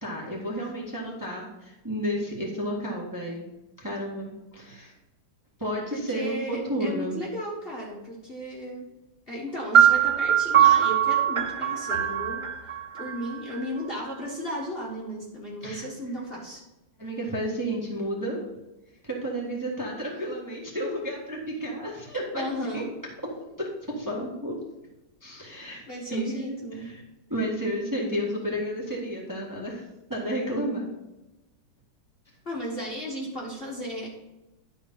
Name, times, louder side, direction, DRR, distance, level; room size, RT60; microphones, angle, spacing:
voice 1, 0.0-3.5 3.8-4.9 5.6-7.2 15.6-15.9 17.0-18.5 19.0-22.4 22.7-22.8 23.2-24.6 25.2-25.8 26.1-27.0 27.3-30.9, equal, 10° right, -3 dB, 1.7 m, -32 dB
voice 2, 5.9-8.9 9.3-12.5 13.0-16.6 22.3-22.9 25.9-26.9 32.5-34.1, equal, 30° left, -4 dB, 1.7 m, -35 dB
sound 1, 9.7-13.6, right 9 dB, 30° right, 0.5 m, -21 dB
11.5 x 4.4 x 5.6 m, 0.99 s
omnidirectional pair, 2.1 m